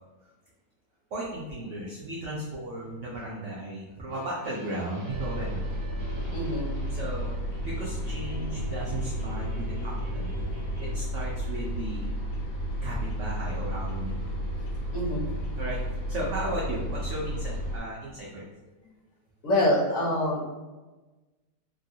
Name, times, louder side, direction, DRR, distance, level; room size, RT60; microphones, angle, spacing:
voice 1, 1.1-5.8 6.9-7.3 7.6-10.4 10.8-12.1 12.8-14.5 15.6-15.8 16.1-18.5, right 1 dB, 75° right, -5 dB, 0.6 m, -35 dB
sound 1, 4.1-11.0, left 1 dB, 55° right, 1.0 m, -42 dB
sound 2, 5.1-17.8, equal, 85° left, 1.6 m, -32 dB
voice 2, 6.3-6.8 14.9-15.2 19.4-20.4, left 1 dB, 55° left, -7 dB, 1.3 m, -25 dB
3.4 x 2.3 x 2.6 m, 1.2 s
omnidirectional pair, 1.9 m